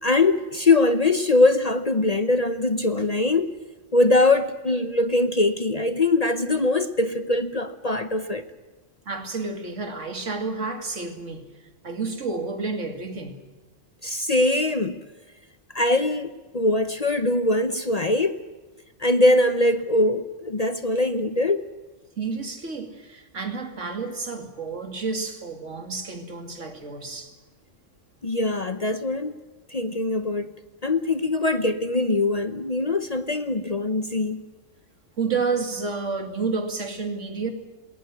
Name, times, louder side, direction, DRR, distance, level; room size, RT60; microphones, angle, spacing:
voice 1, 0.0-3.5 3.9-8.4 14.0-15.0 15.7-18.4 19.0-21.6 28.2-29.4 29.7-30.5 30.8-34.4, left 2 dB, 35° left, 0.9 m, -22 dB
voice 2, 9.1-11.5 11.8-13.4 22.2-27.3 35.2-37.5, right 4 dB, 80° right, 2.8 m, -30 dB
20.5 x 18.5 x 9.5 m
omnidirectional pair, 1.2 m